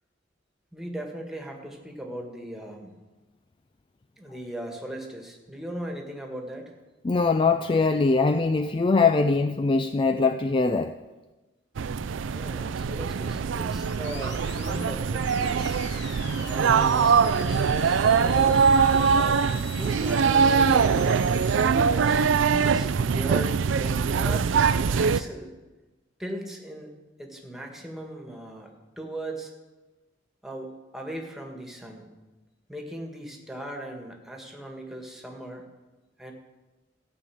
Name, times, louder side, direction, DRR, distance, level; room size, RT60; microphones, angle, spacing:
voice 1, 0.7-2.9 4.2-6.7 12.3-15.8 16.4-18.7 19.1-21.2 21.7-25.5 26.2-26.9 27.2-29.5 30.4-32.1 32.7-35.7 36.2-36.3, right 1 dB, ahead, 1 dB, 1.8 m, -38 dB
voice 2, 7.0-10.9, left 4 dB, 25° left, 9 dB, 0.4 m, -22 dB
Jubilee Line - London Bridge to Canada Water, 11.8-25.2, right 6 dB, 80° right, 0.4 m, -23 dB
sound 1, 13.7-21.7, left 6 dB, 65° left, 1.2 m, -44 dB
15.0 x 5.5 x 8.6 m, 1.2 s
head